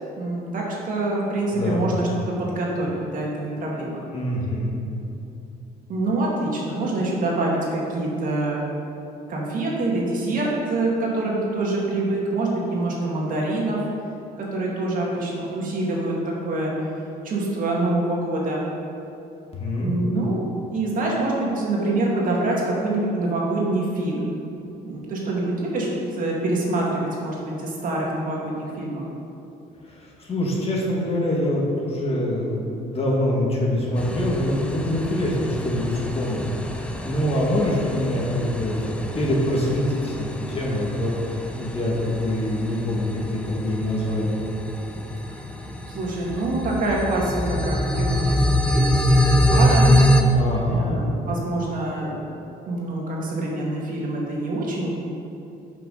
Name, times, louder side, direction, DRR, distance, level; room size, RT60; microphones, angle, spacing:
voice 1, 0.2-4.0 5.9-8.6 9.3-13.8 14.4-16.7 17.2-18.7 19.8-24.3 24.8-29.0 45.9-49.9 50.7-52.3 52.7-54.9, right 2 dB, 55° right, -3 dB, 2.1 m, -25 dB
voice 2, 1.5-1.9 4.1-4.8 19.5-20.0 29.9-36.4 36.8-44.4 50.3-51.0, left 1 dB, 35° left, -3 dB, 1.9 m, -25 dB
sound 1, 34.0-50.2, equal, 5° left, 0.6 m, -24 dB
10.5 x 5.8 x 4.1 m, 2.8 s
cardioid pair, 110°, 17 cm